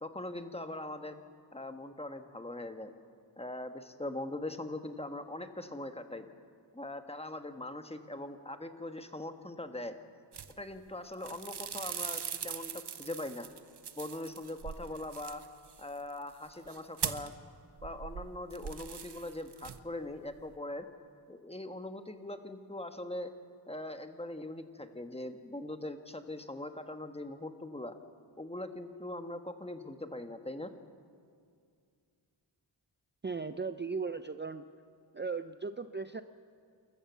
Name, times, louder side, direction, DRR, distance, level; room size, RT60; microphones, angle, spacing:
voice 1, 0.0-1.1 1.5-2.9 3.4-6.3 6.7-9.9 10.6-13.5 14.0-15.4 15.8-17.3 17.8-20.9 21.3-23.3 23.7-27.9 28.4-30.7, left 1 dB, 15° left, 7 dB, 1.3 m, -41 dB
sound 1, 10.3-10.9 11.1-17.4 17.8-20.0 20.3-20.6, right 7 dB, 60° right, 0.9 m, -41 dB
voice 2, 33.2-34.7 35.1-36.2, right 4 dB, 25° right, 10 dB, 0.5 m, -37 dB
28.0 x 14.0 x 7.2 m, 2.3 s
wide cardioid pair, 75°, 45 cm